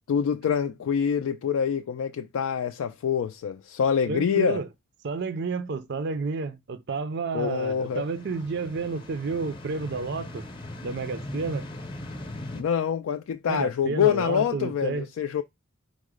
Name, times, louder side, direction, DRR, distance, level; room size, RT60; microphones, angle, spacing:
voice 1, 0.1-4.6 7.3-8.0 12.5-15.4, left 7 dB, 75° left, 0.3 m, -26 dB
voice 2, 4.1-4.7 5.0-10.5 10.8-11.7 13.5-15.0, right 4 dB, 50° right, 0.4 m, -31 dB
sound 1, 7.5-12.6, left 1 dB, 20° left, 0.7 m, -40 dB
4.7 x 2.1 x 4.7 m
head